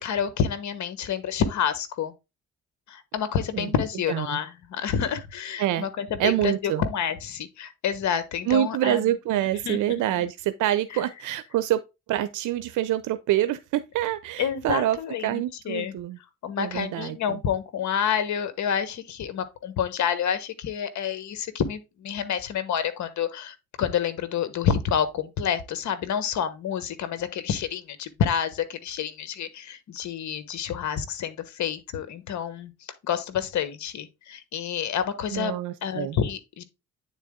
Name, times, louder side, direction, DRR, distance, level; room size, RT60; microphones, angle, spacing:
voice 1, 0.0-2.1 2.9-9.1 9.6-9.8 10.9-11.0 14.4-15.9 16.4-36.6, left 8 dB, 70° left, 1.3 m, -28 dB
voice 2, 4.1-4.4 5.6-5.9 6.2-6.8 8.5-11.8 12.1-15.0 15.2-16.2 16.6-17.4 35.3-36.2, right 13 dB, 80° right, 0.6 m, -26 dB
9.2 x 4.0 x 3.7 m
cardioid pair, 90°, 30 cm